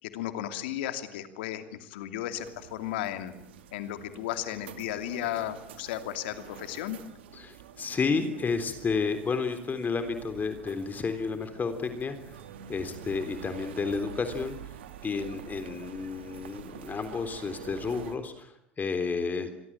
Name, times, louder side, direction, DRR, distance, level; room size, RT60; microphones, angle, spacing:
voice 1, 0.0-3.3 3.7-7.0, left 12 dB, 75° left, 9 dB, 2.7 m, -34 dB
sound 1, 2.3-18.2, right 9 dB, 80° right, 2.5 m, -47 dB
voice 2, 7.3-12.4 12.7-14.6 15.0-19.5, left 4 dB, 30° left, 9 dB, 3.6 m, -31 dB
27.0 x 22.5 x 8.8 m, 0.76 s
hypercardioid pair, 75°, 6 cm